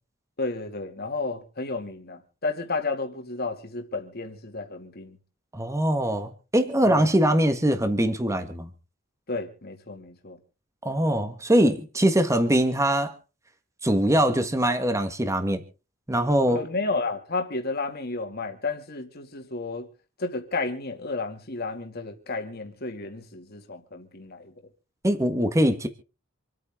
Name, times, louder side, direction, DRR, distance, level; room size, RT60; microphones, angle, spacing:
voice 1, 0.4-5.2 6.8-7.1 9.3-10.4 16.5-19.9 20.2-24.5, left 3 dB, 50° left, 2.4 m, -32 dB
voice 2, 5.5-8.7 10.8-13.1 13.8-15.6 16.1-16.6 25.0-25.9, right 1 dB, 15° right, 1.4 m, -22 dB
27.0 x 9.3 x 3.7 m
head